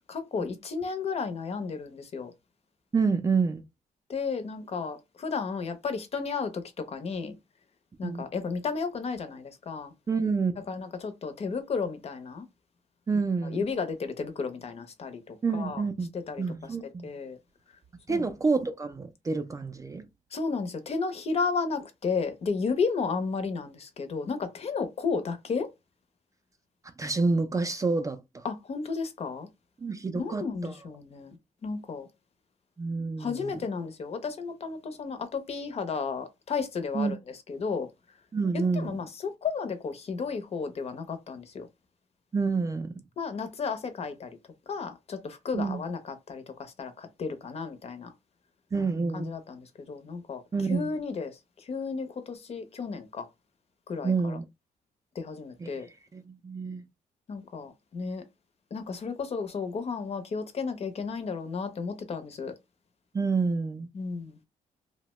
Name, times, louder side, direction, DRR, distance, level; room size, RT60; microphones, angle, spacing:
voice 1, 0.1-2.3 4.1-7.3 8.0-9.9 10.7-12.5 13.4-15.8 16.3-17.4 18.1-18.2 20.3-25.7 28.4-29.5 30.1-31.4 31.6-32.1 33.2-37.2 37.5-37.9 38.5-41.7 43.2-44.4 44.7-48.1 49.1-50.4 50.7-53.3 53.9-54.4 55.1-55.9 57.3-58.2 58.7-62.5 63.9-64.4, left 5 dB, 45° left, 0.7 m, -33 dB
voice 2, 2.9-3.6 8.0-8.2 10.1-10.6 13.1-13.6 15.4-16.1 16.4-17.1 18.1-20.0 27.0-28.2 29.8-30.7 32.8-33.5 36.9-37.2 38.3-38.9 42.3-42.9 45.5-45.8 48.7-49.3 50.5-50.9 54.0-54.4 55.6-55.7 56.1-56.8 63.1-63.9, right 4 dB, 20° right, 0.4 m, -28 dB
2.8 x 2.1 x 3.0 m
cardioid pair, 125°, 15 cm